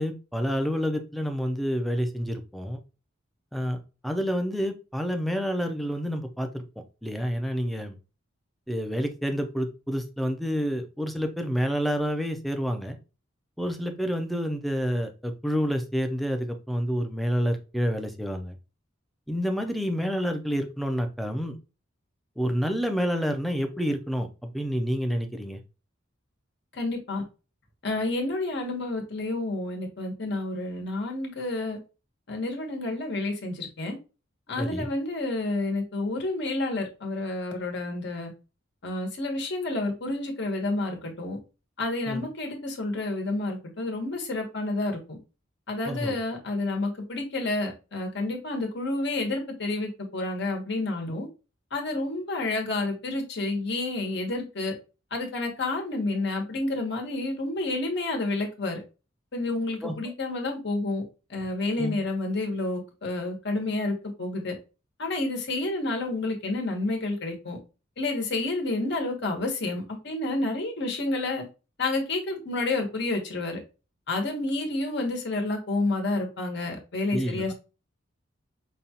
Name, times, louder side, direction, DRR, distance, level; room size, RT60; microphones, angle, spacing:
voice 1, 0.0-2.8 3.5-3.8 4.0-6.6 7.0-7.9 8.7-13.0 13.6-18.5 19.3-21.6 22.4-24.3 24.5-25.6 34.6-34.9 42.1-42.2 45.9-46.2 59.8-60.0 61.8-62.0 77.1-77.5, equal, ahead, 0.4 m, -28 dB
voice 2, 26.7-27.2 27.8-31.8 32.3-34.0 34.5-38.3 38.8-41.4 41.8-45.2 45.7-51.3 51.7-54.7 55.1-58.8 59.3-61.0 61.3-64.6 65.0-67.6 68.0-71.4 71.8-73.6 74.1-77.5, left 2 dB, 60° left, 1.1 m, -29 dB
5.2 x 2.3 x 2.8 m
head